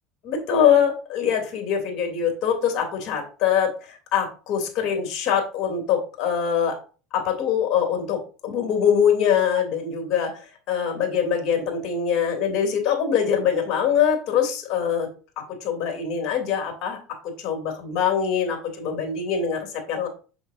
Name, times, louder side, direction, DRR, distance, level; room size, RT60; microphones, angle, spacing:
voice 1, 0.2-6.8 7.1-15.1 15.4-17.0 17.2-20.1, left 8 dB, 55° left, 4 dB, 2.9 m, -23 dB
7.8 x 6.7 x 2.6 m, 0.35 s
hypercardioid pair, 90°, 0 cm